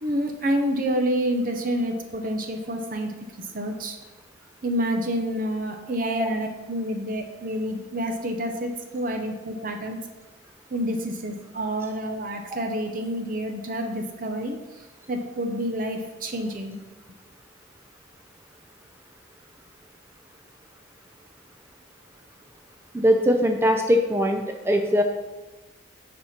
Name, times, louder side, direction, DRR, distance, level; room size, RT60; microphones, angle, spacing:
voice 1, 0.0-3.1 3.5-4.0 4.6-10.0 10.7-14.6 15.1-16.8, equal, 45° right, 4 dB, 0.8 m, -28 dB
voice 2, 22.9-25.0, equal, 10° right, 4 dB, 0.4 m, -21 dB
8.5 x 4.4 x 5.8 m, 1.2 s
head